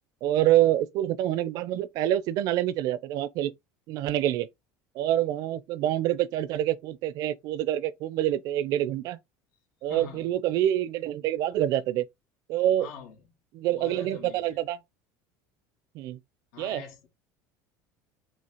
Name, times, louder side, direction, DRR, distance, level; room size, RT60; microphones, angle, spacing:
voice 1, 0.2-3.5 3.9-4.5 5.0-9.2 9.8-12.0 12.5-12.9 13.5-14.8 15.9-16.2 16.6-16.8, right 12 dB, 55° right, 0.5 m, -26 dB
voice 2, 9.8-10.3 12.8-13.3 13.7-14.6 16.5-17.1, left 6 dB, 80° left, 2.1 m, -45 dB
5.7 x 2.8 x 2.8 m
cardioid pair, 140°, 8 cm